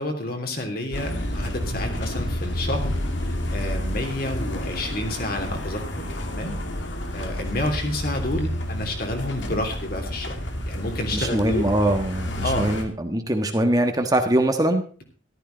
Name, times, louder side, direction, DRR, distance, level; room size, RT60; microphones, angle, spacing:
voice 1, 0.0-2.9 3.2-6.6 7.1-10.4 10.7-11.6 12.4-12.7, left 1 dB, 50° left, 4 dB, 3.1 m, -29 dB
sound 1, 0.9-12.8, equal, 75° left, 2.4 m, -30 dB
voice 2, 11.1-14.8, right 1 dB, 20° right, 5 dB, 1.4 m, -22 dB
14.0 x 13.0 x 4.0 m, 0.41 s
head